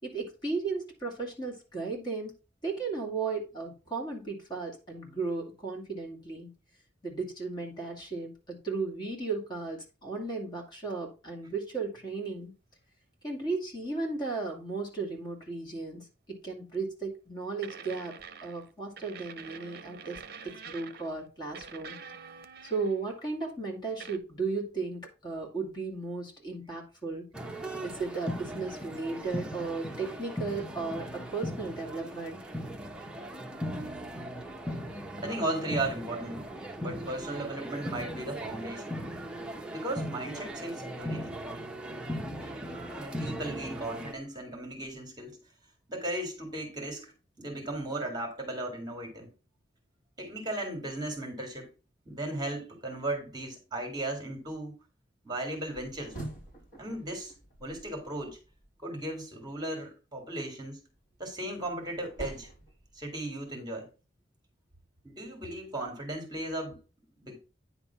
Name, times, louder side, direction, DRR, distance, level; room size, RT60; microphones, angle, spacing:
voice 1, 0.0-2.3 2.6-6.5 7.0-12.5 13.2-22.0 22.6-27.3 27.8-32.4, right 4 dB, 25° left, 2.7 m, -35 dB
sound 1, 16.7-16.9 17.6-18.7 19.0-21.2 21.5-23.1 24.0-24.2, right 6 dB, 55° right, 0.7 m, -46 dB
sound 2, 27.3-44.1, equal, 5° right, 1.0 m, -38 dB
voice 2, 33.6-34.4 35.2-36.5 36.8-39.1 39.7-41.4 42.5-45.4 45.9-47.1 47.4-49.3 50.2-51.7 52.1-54.8 55.2-56.2 56.7-57.3 57.6-58.4 58.8-60.9 61.2-62.5 62.9-63.9 65.0-66.8 67.2-67.4, right 1 dB, 25° right, 2.1 m, -36 dB
sound 3, 55.6-58.7 60.9-63.5, right 2 dB, 45° left, 4.1 m, -46 dB
9.7 x 3.6 x 5.7 m
head